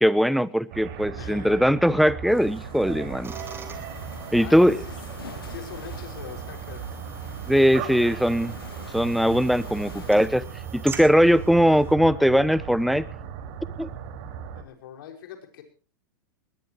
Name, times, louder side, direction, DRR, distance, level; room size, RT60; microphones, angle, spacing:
voice 1, 0.0-3.3 4.3-4.8 7.5-8.5 8.9-10.4 10.7-13.0 13.8-13.9, equal, ahead, 17 dB, 1.0 m, -20 dB
sound 1, 0.7-14.6, right 7 dB, 55° right, 5.1 m, -37 dB
voice 2, 1.0-1.6 4.4-5.0 5.5-7.0 14.5-15.6, left 9 dB, 70° left, 5 dB, 5.8 m, -42 dB
sound 2, 2.3-10.3, left 8 dB, 85° left, 2.7 m, -47 dB
sound 3, 3.2-11.9, right 5 dB, 20° right, 4.2 m, -44 dB
21.0 x 20.5 x 3.1 m, 0.38 s
hypercardioid pair, 105°, 12 cm